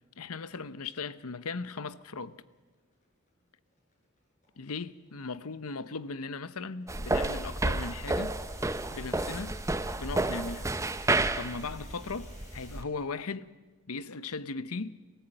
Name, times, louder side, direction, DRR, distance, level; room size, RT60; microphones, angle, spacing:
voice 1, 0.2-2.4 4.6-8.4 8.9-9.6 10.0-10.7 11.4-13.5 13.9-15.0, left 4 dB, 75° left, 0.8 m, -38 dB
sound 1, 1.8-7.0 8.1-12.8, left 2 dB, 35° left, 5.8 m, -57 dB
sound 2, 6.9-12.8, right 2 dB, 15° right, 0.6 m, -31 dB
28.0 x 15.0 x 9.0 m
head